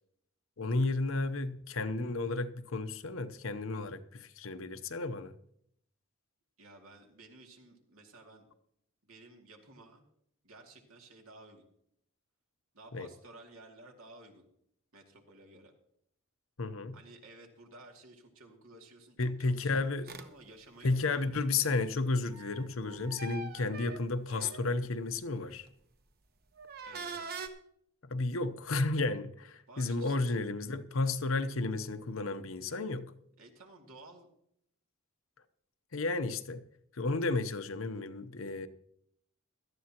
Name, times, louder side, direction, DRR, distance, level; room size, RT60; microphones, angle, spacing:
voice 1, 0.6-5.4 12.9-13.1 16.6-17.0 19.2-20.1 20.8-25.7 28.0-33.1 35.9-36.6 36.9-38.7, left 3 dB, 70° left, 0.8 m, -32 dB
voice 2, 6.6-8.5 9.0-10.1 10.4-11.6 12.7-14.5 14.9-15.7 16.9-21.8 26.9-27.4 29.7-30.4 33.4-34.3, right 2 dB, 85° right, 2.5 m, -54 dB
sound 1, 20.1-20.3 22.3-24.9 25.5-25.7 26.6-27.5, right 3 dB, 45° right, 1.1 m, -43 dB
17.5 x 13.0 x 2.9 m
head